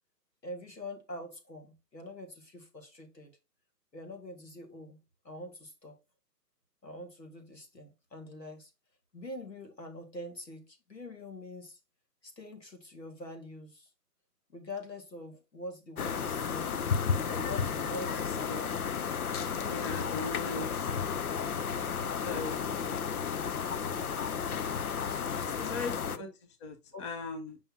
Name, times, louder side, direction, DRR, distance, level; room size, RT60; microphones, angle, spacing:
voice 1, 0.4-3.4 3.9-5.0 5.2-6.0 6.8-8.7 9.1-11.8 12.2-13.9 14.5-16.8 17.2-18.7 19.5-20.2 22.3-22.7 24.9-25.8 26.1-26.2 26.9-27.1, left 1 dB, 85° left, 2.3 m, -45 dB
sound 1, 16.0-26.2, left 6 dB, 60° left, 0.8 m, -33 dB
voice 2, 18.1-18.7 19.7-20.9 22.2-22.5 22.9-23.0 25.4-26.3 26.6-27.6, left 3 dB, 20° left, 0.7 m, -39 dB
6.7 x 5.5 x 2.8 m
figure-of-eight pair, 130°, 49 cm